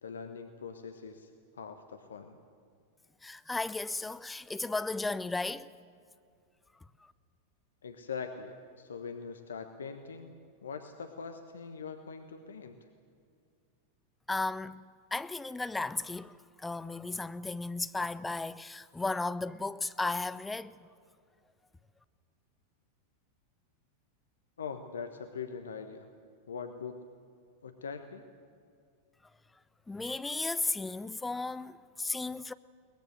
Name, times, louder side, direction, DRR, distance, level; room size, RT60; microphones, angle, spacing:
voice 1, 0.0-2.4 7.8-10.3 10.6-12.8 24.6-26.1 26.5-27.0 27.6-28.2, left 5 dB, 70° left, 1.2 m, -42 dB
voice 2, 3.2-5.7 14.3-14.8 15.1-20.9 29.9-32.5, left 3 dB, 10° left, 0.6 m, -35 dB
22.0 x 20.0 x 7.9 m
figure-of-eight pair, 90°, 0 cm